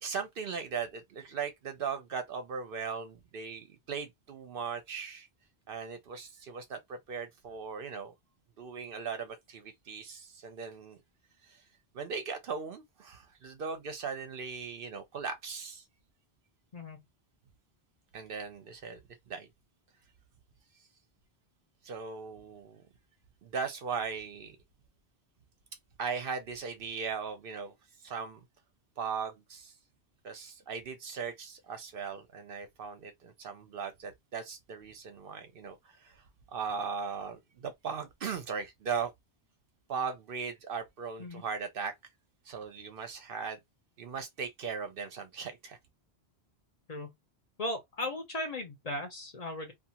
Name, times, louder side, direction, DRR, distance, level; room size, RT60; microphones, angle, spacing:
voice 1, 0.0-5.3 5.7-8.1 8.6-11.0 11.5-11.6 11.9-15.8 18.1-19.0 19.3-19.5 21.8-22.8 23.4-24.6 26.0-27.7 28.0-28.4 29.0-29.7 30.2-36.2 36.5-39.1 39.9-41.9 42.5-43.6 44.0-45.8, right 6 dB, 65° right, 0.8 m, -38 dB
voice 2, 47.6-49.7, left 1 dB, 45° left, 0.7 m, -37 dB
2.4 x 2.4 x 2.8 m
omnidirectional pair, 1.1 m